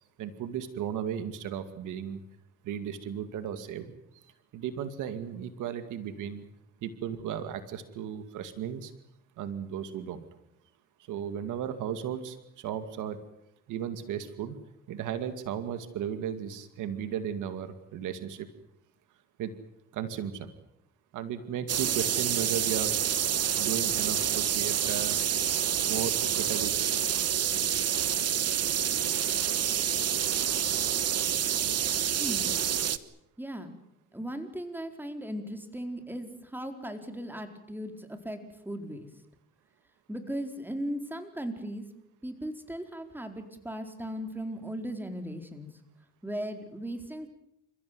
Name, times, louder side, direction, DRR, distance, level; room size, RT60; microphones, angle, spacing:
voice 1, 0.2-2.2 2.6-6.5 6.8-8.9 9.4-10.3 11.1-13.2 13.7-14.6 14.9-18.5 19.4-19.5 19.9-20.5 21.1-22.9 23.6-25.2 25.9-27.1, right 9 dB, 90° right, 10 dB, 2.2 m, -35 dB
sound 1, 21.7-33.0, right 9 dB, 55° right, 1.4 m, -28 dB
voice 2, 32.2-32.5 33.4-33.7 34.1-39.1 40.1-41.9 42.2-45.7 46.2-47.3, equal, 5° right, 6 dB, 4.4 m, -37 dB
29.5 x 15.5 x 9.5 m, 0.80 s
cardioid pair, 90°, 30 cm